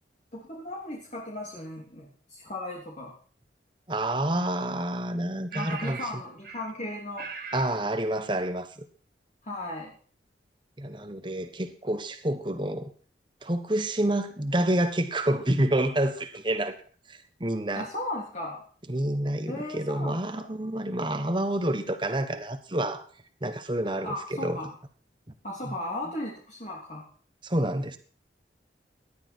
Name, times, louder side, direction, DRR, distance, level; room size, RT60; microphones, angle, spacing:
voice 1, 0.3-3.1 5.5-7.3 9.4-9.9 17.7-18.6 19.5-20.4 24.0-24.7 25.4-27.0, left 1 dB, 40° left, -3 dB, 3.1 m, -36 dB
voice 2, 3.9-6.0 7.5-8.9 10.8-12.9 13.4-16.8 17.1-17.9 18.9-23.0 23.4-24.1 24.4-24.6 25.7-25.8 27.4-28.0, right 1 dB, 25° right, 9 dB, 1.3 m, -28 dB
sound 1, 4.1-4.2 5.5-6.1 6.4-6.7 7.2-7.7, right 5 dB, 50° right, 2.8 m, -39 dB
18.5 x 12.0 x 4.5 m, 0.42 s
head